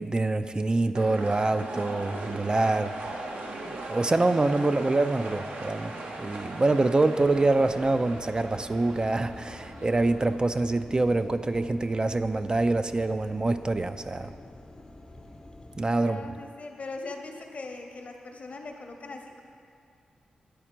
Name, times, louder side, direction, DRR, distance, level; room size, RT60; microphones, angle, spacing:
voice 1, 0.0-3.2 3.6-14.3 15.8-16.2, right 2 dB, 30° right, 9 dB, 0.3 m, -25 dB
sound 1, 1.0-10.4, right 2 dB, 70° right, 0.7 m, -39 dB
sound 2, 7.2-15.8, left 1 dB, 25° left, 0.5 m, -47 dB
voice 2, 16.0-19.4, left 3 dB, 55° left, 3 dB, 0.8 m, -40 dB
10.0 x 4.1 x 4.4 m, 2.4 s
supercardioid pair, 40°, 3 cm